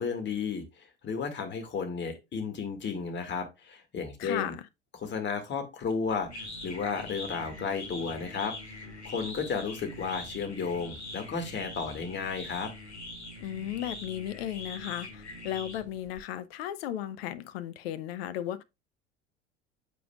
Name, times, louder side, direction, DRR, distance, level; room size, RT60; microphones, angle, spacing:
voice 1, 0.0-4.5 5.0-8.5 9.0-12.7, left 5 dB, 35° left, 2.0 m, -33 dB
voice 2, 4.2-4.6 13.4-18.6, left 11 dB, 65° left, 0.7 m, -35 dB
sound 1, 5.8-16.2, left 2 dB, 90° left, 1.3 m, -43 dB
7.6 x 5.3 x 2.3 m
figure-of-eight pair, 65°, 32 cm